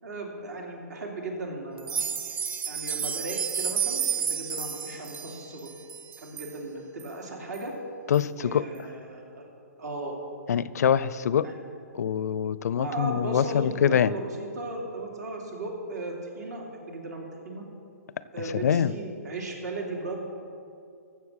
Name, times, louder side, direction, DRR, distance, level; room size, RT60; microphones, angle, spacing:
voice 1, 0.0-2.3 2.7-5.7 6.2-7.7 8.4-9.5 9.8-10.1 11.4-11.6 12.8-17.6 18.3-20.3, right 2 dB, 75° right, 0 dB, 2.9 m, -36 dB
sound 1, 1.8-6.5 7.0-7.1 7.5-7.6 8.1-8.2, right 8 dB, 20° right, 0.5 m, -31 dB
voice 2, 8.1-8.7 10.5-11.5 11.9-14.1 18.6-18.9, left 8 dB, 65° left, 17 dB, 0.4 m, -24 dB
15.0 x 7.0 x 6.3 m, 2.5 s
hypercardioid pair, 145°, 9 cm